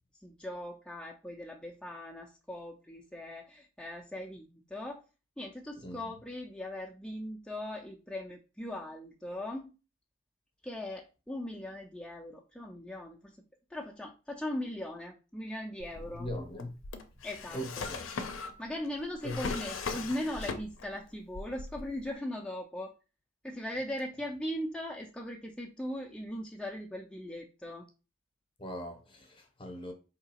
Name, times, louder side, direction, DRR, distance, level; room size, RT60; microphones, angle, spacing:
voice 1, 0.2-5.0 5.4-9.7 10.6-13.3 13.7-16.3 17.2-17.9 18.6-22.9 23.4-27.8, left 1 dB, 5° left, 0.4 m, -39 dB
voice 2, 5.8-6.2 16.0-16.7 17.5-18.1 19.2-19.4 28.6-29.9, equal, 25° left, 0.8 m, -40 dB
Drawer open or close, 15.8-21.0 21.3-22.1, left 4 dB, 70° left, 0.5 m, -39 dB
4.6 x 2.8 x 2.8 m
head